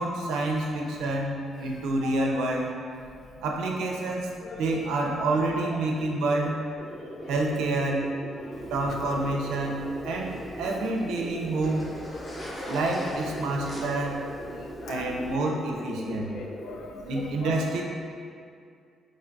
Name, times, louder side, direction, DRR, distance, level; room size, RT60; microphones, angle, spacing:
voice 1, 0.0-2.7 3.4-4.3 4.6-6.6 7.3-8.1 8.7-11.9 12.7-14.2 14.9-16.3 17.1-17.8, right 2 dB, 85° right, 0 dB, 0.4 m, -28 dB
sound 1, 6.8-16.8, equal, 5° right, 0.5 m, -40 dB
Zipper (clothing), 8.5-15.4, left 1 dB, 30° left, 0.8 m, -43 dB
voice 2, 9.3-9.7 10.6-10.7 13.4-13.5 14.5-15.1 16.3-17.7, left 5 dB, 65° left, 3 dB, 0.3 m, -41 dB
3.1 x 2.2 x 3.7 m, 2.3 s
cardioid pair, 90°, 0 cm